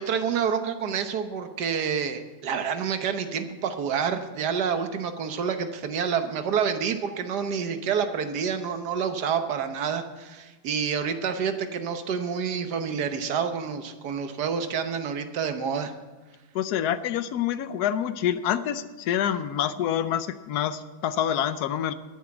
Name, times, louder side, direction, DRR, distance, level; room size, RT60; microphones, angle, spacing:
voice 1, 0.0-15.9, right 7 dB, 55° right, 8 dB, 1.4 m, -28 dB
voice 2, 16.5-21.9, left 10 dB, 65° left, 12 dB, 1.0 m, -27 dB
11.0 x 10.0 x 7.2 m, 1.2 s
omnidirectional pair, 2.3 m